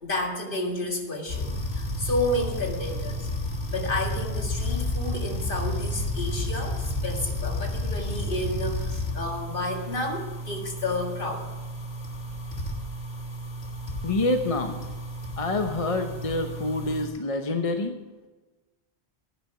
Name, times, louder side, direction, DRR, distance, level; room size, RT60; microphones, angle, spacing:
voice 1, 0.0-3.3 3.7-11.5, left 1 dB, 55° left, 2 dB, 2.0 m, -31 dB
sound 1, 1.3-17.1, left 1 dB, 85° left, 2.0 m, -32 dB
voice 2, 14.0-14.8 15.4-17.9, left 2 dB, 35° left, 5 dB, 0.9 m, -27 dB
10.5 x 10.5 x 5.8 m, 1.2 s
omnidirectional pair, 1.0 m